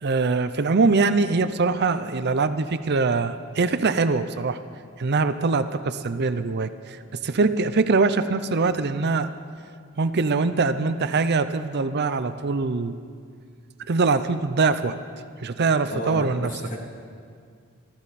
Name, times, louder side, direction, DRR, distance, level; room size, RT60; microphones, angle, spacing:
voice 1, 0.0-4.6 5.0-9.3 10.0-13.0 13.9-15.0 15.4-16.5, right 4 dB, 50° right, 11 dB, 0.6 m, -23 dB
voice 2, 15.9-16.8, equal, 40° left, -1 dB, 2.6 m, -32 dB
23.0 x 14.5 x 4.2 m, 2.1 s
head